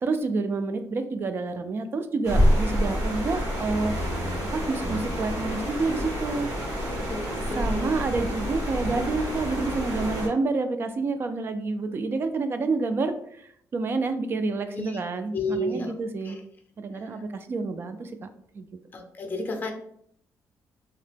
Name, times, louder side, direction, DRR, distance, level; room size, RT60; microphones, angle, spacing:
voice 1, 0.0-4.0 4.5-6.5 7.6-16.4 16.8-18.3 18.5-18.7, right 3 dB, 40° right, 9 dB, 0.3 m, -28 dB
sound 1, 2.2-10.3, equal, 75° right, 1.2 m, -27 dB
voice 2, 6.9-8.0 14.7-15.0 15.3-15.9 16.3-16.4 17.0-17.1 18.9-19.7, left 1 dB, 30° left, 4 dB, 0.6 m, -32 dB
2.8 x 2.1 x 3.3 m, 0.66 s
cardioid pair, 130°, 6 cm